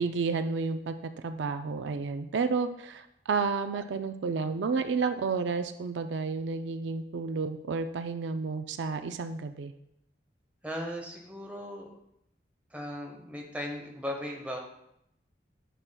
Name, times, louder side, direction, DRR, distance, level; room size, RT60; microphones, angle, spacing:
voice 1, 0.0-9.7, right 4 dB, 80° right, 9 dB, 0.4 m, -31 dB
voice 2, 10.6-11.9 12.7-14.6, equal, 10° right, 0 dB, 1.0 m, -37 dB
11.0 x 5.9 x 2.3 m, 0.77 s
head